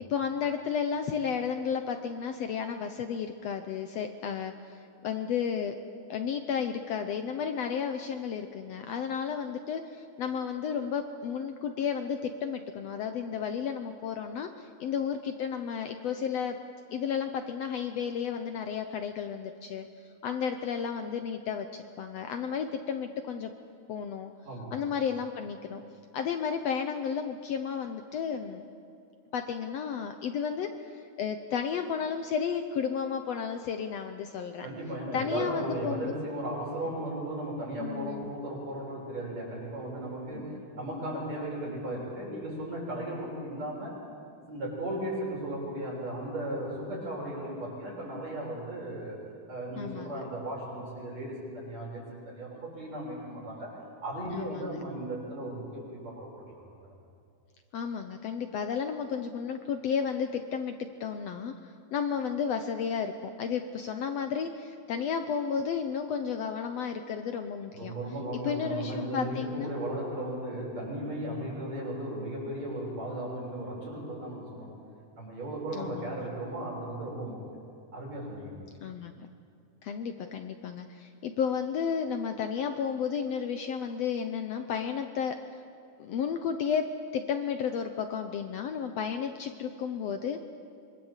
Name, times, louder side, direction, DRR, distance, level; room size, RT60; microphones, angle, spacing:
voice 1, 0.0-5.8 6.1-16.6 16.9-19.9 20.2-23.5 23.9-24.3 24.7-25.8 26.1-28.7 29.3-34.7 35.1-36.1 37.8-38.3 40.3-40.6 49.8-50.2 54.3-54.8 57.7-67.9 68.4-69.7 75.7-76.3 78.8-79.3 79.8-85.6 86.0-90.5, left 7 dB, 70° left, 6 dB, 1.7 m, -33 dB
voice 2, 24.4-24.8 34.6-44.0 44.5-49.2 49.5-56.7 67.7-74.8 75.1-77.4 77.9-78.6, right 1 dB, 55° right, -3 dB, 7.7 m, -36 dB
26.0 x 23.5 x 7.4 m, 2.4 s
omnidirectional pair, 3.6 m